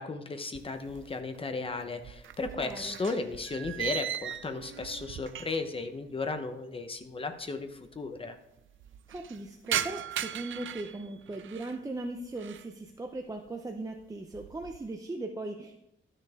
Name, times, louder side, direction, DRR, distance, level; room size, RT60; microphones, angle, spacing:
voice 1, 0.0-8.4, left 3 dB, 30° left, 7 dB, 1.0 m, -35 dB
sound 1, 0.5-1.4 1.7-5.8 6.1-6.2 7.0-7.1 7.3-7.4 7.7-8.2 8.6-11.8 12.2-12.7 13.2-13.6 14.0-14.9, right 10 dB, 90° right, 0.5 m, -38 dB
voice 2, 2.6-3.0 9.1-15.8, right 2 dB, 15° right, 3 dB, 0.6 m, -39 dB
12.5 x 6.6 x 3.6 m, 0.83 s
wide cardioid pair, 130°, 20 cm